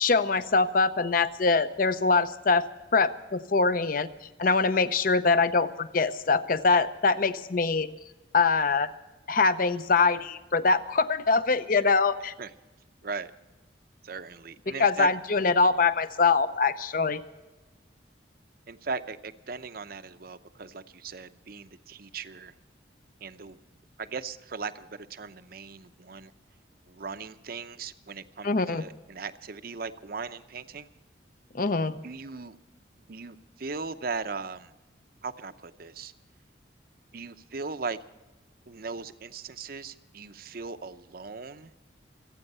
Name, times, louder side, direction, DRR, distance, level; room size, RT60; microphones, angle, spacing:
voice 1, 0.0-2.7 2.9-4.1 4.4-7.9 8.3-8.9 9.3-12.3 14.8-17.2 28.4-28.8 31.5-32.0, left 4 dB, 50° left, 13 dB, 0.7 m, -23 dB
voice 2, 14.0-15.1 18.7-22.5 23.2-23.6 24.0-26.3 26.9-30.9 32.0-32.6 33.1-34.7 35.2-36.1 37.1-38.0 38.7-41.7, right 4 dB, 55° right, 11 dB, 0.7 m, -38 dB
26.5 x 9.0 x 5.5 m, 1.1 s
head